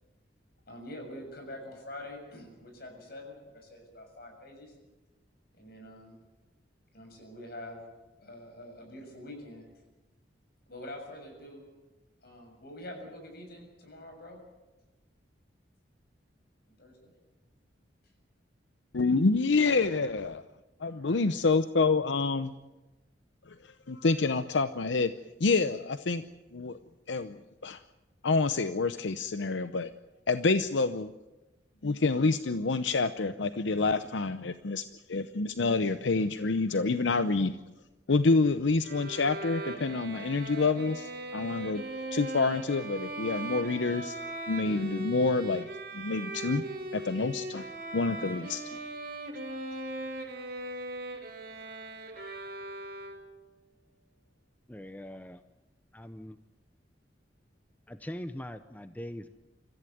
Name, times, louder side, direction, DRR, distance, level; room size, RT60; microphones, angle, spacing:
voice 1, 0.7-4.8 5.5-6.2 6.9-7.8 8.2-9.7 10.7-11.6 12.2-14.4 16.8-17.1 20.9-21.3, left 1 dB, 60° left, 3 dB, 7.1 m, -45 dB
voice 2, 18.9-20.4 20.8-22.5 23.5-25.1 25.4-26.2 26.5-26.8 27.1-27.4 27.6-27.8 28.2-29.9 30.3-31.1 31.8-37.6 38.1-41.8 42.1-44.2 44.5-46.6 46.9-47.7 47.9-48.8, left 3 dB, 85° left, 11 dB, 0.7 m, -27 dB
Bowed string instrument, 38.8-53.5, right 1 dB, 55° right, 3.6 m, -39 dB
voice 3, 54.7-55.4 55.9-56.4 57.9-59.3, left 1 dB, 10° left, 10 dB, 0.6 m, -41 dB
25.5 x 15.0 x 9.3 m, 1.1 s
head